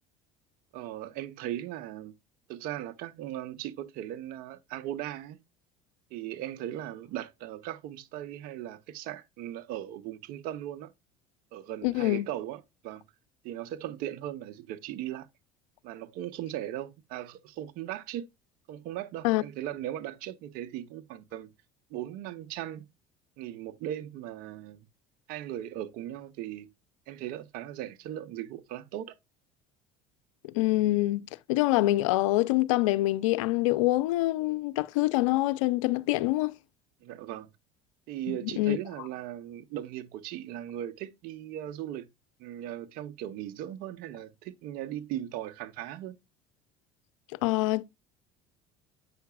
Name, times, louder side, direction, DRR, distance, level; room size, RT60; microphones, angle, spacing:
voice 1, 0.7-2.1 2.5-5.4 6.1-10.9 11.5-13.0 13.4-15.3 15.8-18.2 18.7-21.5 21.9-22.9 23.4-24.9 25.3-26.7 27.1-29.1 37.0-37.5 38.1-42.1 42.4-46.2, right 12 dB, 65° right, 0.7 m, -38 dB
voice 2, 11.8-12.3 19.2-19.4 30.5-31.2 31.5-36.5 38.3-38.8 47.4-47.8, left 18 dB, 80° left, 0.4 m, -25 dB
7.9 x 5.7 x 2.3 m
hypercardioid pair, 75°, 16 cm